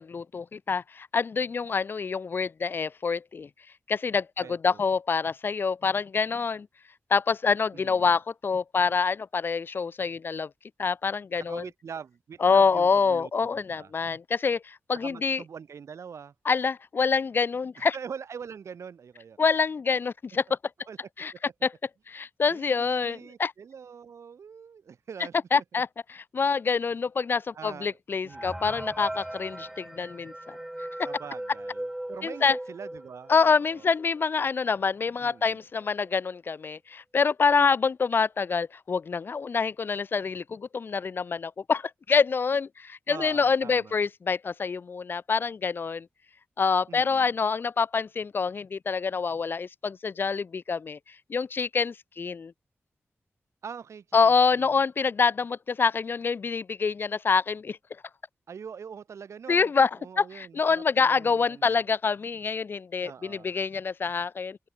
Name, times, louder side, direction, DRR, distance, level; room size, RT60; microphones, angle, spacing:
voice 1, 0.0-3.5 3.9-6.7 7.1-10.5 10.8-11.6 12.4-15.4 16.5-18.0 19.4-20.6 21.2-21.3 21.6-21.7 22.1-23.5 25.5-30.6 32.2-32.6 33.3-46.1 46.6-51.0 51.3-52.5 54.1-57.8 59.5-59.9 60.2-64.6, left 5 dB, 45° left, 0.5 m, -26 dB
voice 2, 4.4-4.8 7.7-8.2 11.4-13.9 14.9-16.3 17.8-19.4 20.9-21.0 21.3-21.4 22.5-25.8 27.5-28.0 28.2-28.7 31.0-33.9 35.2-35.6 43.1-44.0 46.9-47.4 53.6-54.8 58.5-59.7 60.0-61.8 63.0-63.5, right 6 dB, 80° right, 1.2 m, -43 dB
sound 1, 28.3-33.7 34.2-34.3 34.5-34.6 35.3-35.4 35.8-36.1, right 1 dB, 5° right, 0.5 m, -38 dB
open air
wide cardioid pair, 165°, 5 cm